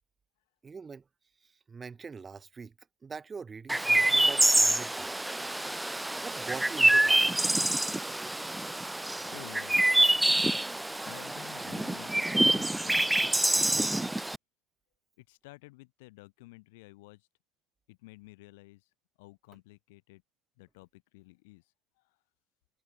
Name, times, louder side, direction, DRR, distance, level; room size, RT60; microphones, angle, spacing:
voice 1, 0.6-1.0 1.4-2.7 3.0-5.2 6.2-7.2, right 5 dB, 20° right, 4.6 m, -43 dB
Chirp tweet, 3.7-14.4, right 1 dB, 5° right, 0.9 m, -26 dB
voice 2, 9.3-9.8 11.0-13.1 13.7-14.2 15.2-17.3 17.9-20.2 20.6-22.2, left 23 dB, 80° left, 7.0 m, -52 dB
supercardioid pair, 115°, 0 cm